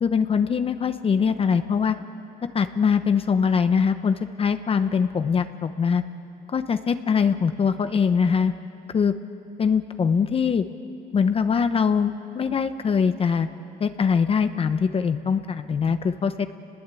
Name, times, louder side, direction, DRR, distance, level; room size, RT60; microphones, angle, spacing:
voice 1, 0.0-2.0 2.5-6.0 6.5-8.5 8.9-9.1 9.6-10.6 11.1-13.5 13.8-16.6, left 6 dB, 35° left, 10 dB, 0.8 m, -22 dB
28.5 x 20.5 x 8.4 m, 2.8 s
cardioid pair, 110°, 17 cm